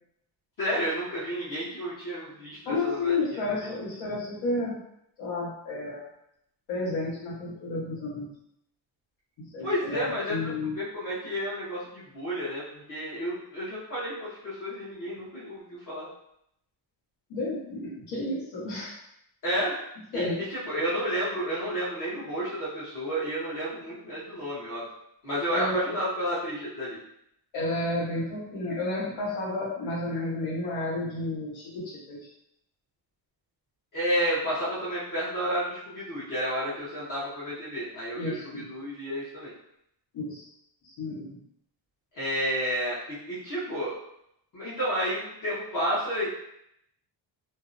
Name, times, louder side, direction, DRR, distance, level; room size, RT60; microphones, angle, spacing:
voice 1, 0.6-3.1 9.6-10.3 10.6-16.1 19.4-19.8 20.1-20.2 20.5-24.8 25.2-27.0 33.9-39.5 42.1-43.9 44.5-46.3, equal, 45° left, -9 dB, 0.8 m, -31 dB
voice 2, 2.6-4.8 5.2-6.0 6.7-8.3 9.5-10.7 17.3-18.9 20.1-20.4 25.5-25.8 27.5-32.2 38.2-38.6 40.1-40.4 41.0-41.4, left 2 dB, 80° left, -5 dB, 1.1 m, -31 dB
2.6 x 2.1 x 2.5 m, 0.76 s
cardioid pair, 140°, 45 cm